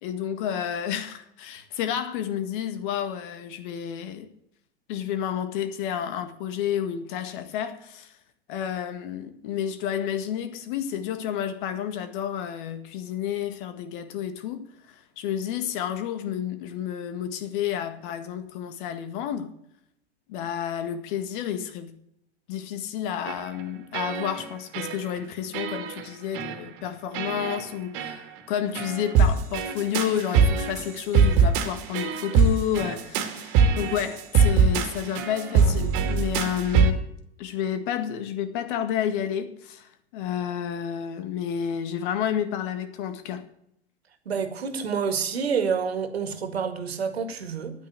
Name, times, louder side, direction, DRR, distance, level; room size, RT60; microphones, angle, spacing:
voice 1, 0.0-4.3 4.9-8.1 8.5-19.5 20.3-21.9 22.5-37.1 37.4-43.5, left 9 dB, 55° left, 1.8 m, -30 dB
sound 1, 23.2-23.6 23.9-24.5 24.7-25.2 25.5-26.0 26.3-26.6 27.1-27.6 27.9-28.2 28.7-36.9, right 5 dB, 50° right, 2.2 m, -23 dB
voice 2, 44.3-47.7, right 6 dB, 75° right, 2.0 m, -28 dB
10.0 x 9.3 x 8.0 m
figure-of-eight pair, 95°, 31 cm